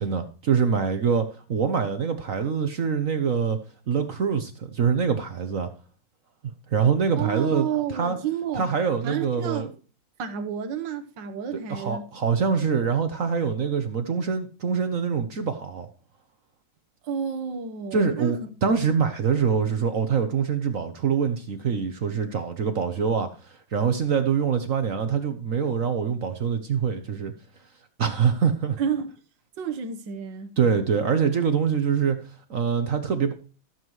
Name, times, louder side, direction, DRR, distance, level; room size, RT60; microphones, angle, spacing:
voice 1, 0.0-3.6 3.9-5.7 6.7-7.7 7.9-8.2 8.6-9.7 11.7-15.9 17.9-27.3 28.0-28.8 30.6-32.2 32.5-33.3, right 6 dB, 50° right, 1.1 m, -24 dB
voice 2, 7.2-8.7 9.0-9.7 10.2-12.0 17.0-18.3 18.8-18.9 28.8-29.1 29.6-30.5, right 8 dB, 70° right, 1.7 m, -30 dB
14.0 x 7.4 x 3.1 m
omnidirectional pair, 2.1 m